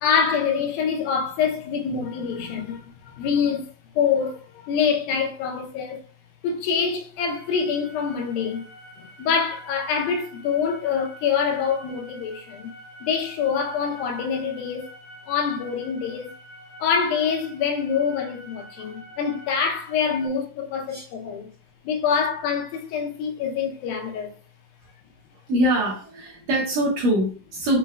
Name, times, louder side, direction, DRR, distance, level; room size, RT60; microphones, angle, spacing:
voice 1, 0.0-3.7 4.0-6.0 6.4-8.7 9.0-12.7 13.0-14.9 15.3-16.3 16.8-21.5 21.9-24.3, left 6 dB, 90° left, 2.5 m, -25 dB
sound 1, 7.1-20.3, right 1 dB, 65° left, 0.9 m, -46 dB
voice 2, 25.5-27.8, right 1 dB, 60° right, 2.1 m, -23 dB
6.5 x 3.2 x 2.2 m
omnidirectional pair, 4.1 m